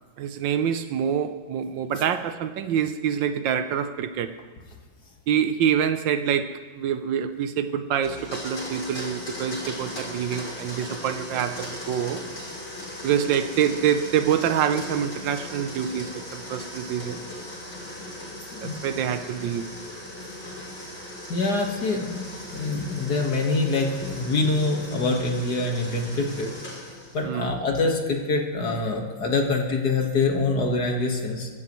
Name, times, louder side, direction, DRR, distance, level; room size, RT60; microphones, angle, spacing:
voice 1, 0.2-4.4 5.3-12.2 13.0-17.2 18.6-19.7 27.2-27.6, right 8 dB, 75° right, 1.3 m, -26 dB
Domestic sounds home sounds, 8.0-27.2, left 1 dB, 75° left, 6.3 m, -38 dB
voice 2, 21.3-22.2 22.5-26.5 27.1-31.5, left 3 dB, 55° left, 2.1 m, -25 dB
23.5 x 14.0 x 3.1 m
omnidirectional pair, 2.2 m